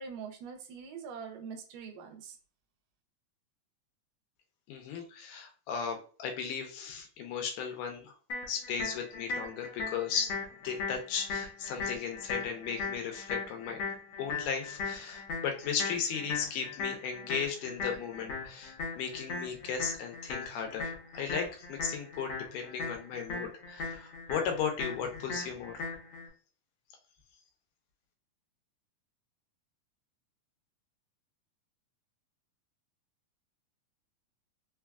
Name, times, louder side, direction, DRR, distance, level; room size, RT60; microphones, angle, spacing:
voice 1, 0.0-2.4, right 6 dB, 85° right, 5 dB, 2.2 m, -43 dB
voice 2, 4.7-8.2 8.5-10.3 10.6-13.8 14.2-25.9, left 6 dB, 85° left, 4 dB, 2.2 m, -36 dB
sound 1, 8.3-26.3, left 4 dB, 65° left, 1.7 m, -39 dB
5.2 x 2.3 x 2.3 m, 0.40 s
omnidirectional pair, 3.8 m